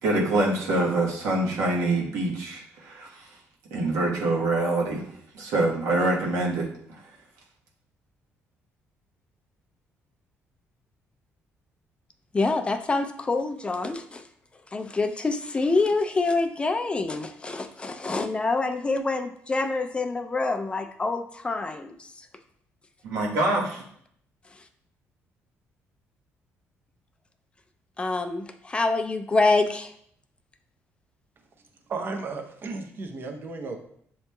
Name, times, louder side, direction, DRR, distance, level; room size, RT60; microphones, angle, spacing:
voice 1, 0.0-3.3 3.7-5.1 5.3-6.7 23.0-23.8, right 2 dB, 90° right, -2 dB, 1.2 m, -25 dB
voice 2, 12.3-14.2 14.7-22.1 28.0-29.9, left 3 dB, 20° left, 7 dB, 0.4 m, -26 dB
voice 3, 31.9-33.8, right 3 dB, 45° right, 3 dB, 0.6 m, -34 dB
7.0 x 2.9 x 2.2 m, 0.66 s
cardioid pair, 110°, 5 cm